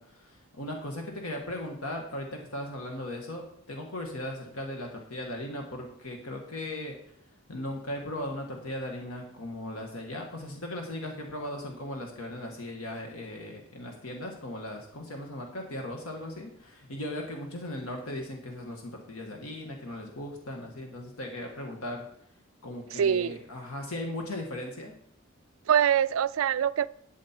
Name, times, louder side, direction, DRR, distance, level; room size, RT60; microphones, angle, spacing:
voice 1, 0.0-3.4 3.7-7.0 7.5-22.0 22.6-24.9, left 1 dB, 85° left, 1.6 m, -38 dB
voice 2, 22.9-23.4 25.7-26.9, right 8 dB, 70° right, 0.3 m, -24 dB
12.0 x 7.4 x 4.4 m
head